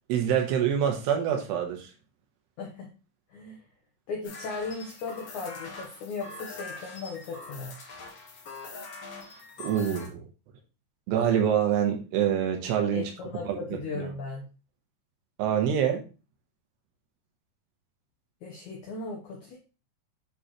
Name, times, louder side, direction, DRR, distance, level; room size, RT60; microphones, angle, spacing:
voice 1, 0.1-1.9 9.6-10.2 11.1-13.1 13.5-13.6 14.0-14.1 15.4-16.0, right 9 dB, 80° right, 3 dB, 3.0 m, -25 dB
voice 2, 2.6-2.9 3.3-3.6 4.1-7.7 12.9-14.5 18.4-19.6, left 4 dB, 85° left, -1 dB, 1.7 m, -37 dB
sound 1, 4.2-10.1, left 3 dB, 60° left, 1.6 m, -43 dB
9.0 x 4.1 x 3.1 m, 0.33 s
omnidirectional pair, 5.0 m